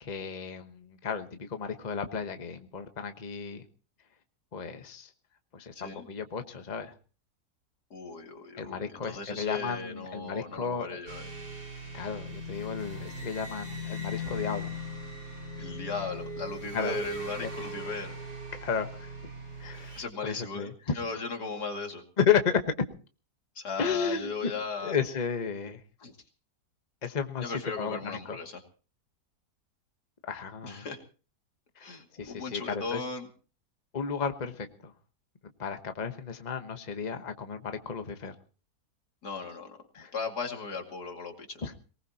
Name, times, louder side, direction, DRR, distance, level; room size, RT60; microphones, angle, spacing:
voice 1, 0.0-3.6 4.5-5.1 5.5-6.9 8.6-11.0 11.9-14.8 16.7-17.0 17.4-17.5 18.6-19.1 19.6-21.0 22.2-22.6 23.8-24.5 24.8-25.8 27.0-28.4 30.3-30.9 31.8-33.0 33.9-34.9 35.6-38.4 39.9-40.1 41.6-41.8, left 6 dB, 30° left, 7 dB, 1.2 m, -33 dB
voice 2, 5.7-6.1 7.9-11.2 15.6-18.2 19.9-20.7 21.0-22.0 23.6-25.0 26.0-26.2 27.4-28.6 30.6-31.0 31.8-33.3 39.2-39.8 40.1-41.6, left 4 dB, 85° left, 3 dB, 2.9 m, -37 dB
sound 1, 11.1-20.0, equal, 90° right, 4.8 m, -39 dB
23.5 x 19.0 x 2.9 m, 0.38 s
omnidirectional pair, 1.7 m